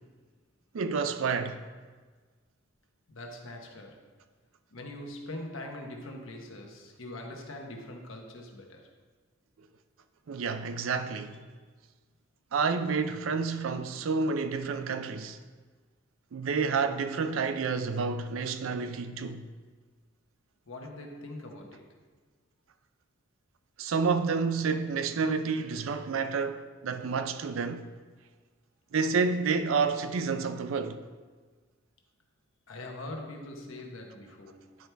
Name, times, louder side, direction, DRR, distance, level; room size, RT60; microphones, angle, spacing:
voice 1, 0.7-1.6 10.3-11.5 12.5-15.4 16.3-19.4 23.8-27.9 28.9-31.0, right 5 dB, 75° right, 0.4 m, -29 dB
voice 2, 3.1-4.1 4.7-8.9 20.7-22.0 32.7-34.8, left 1 dB, 75° left, 1.0 m, -42 dB
10.5 x 4.6 x 3.4 m
head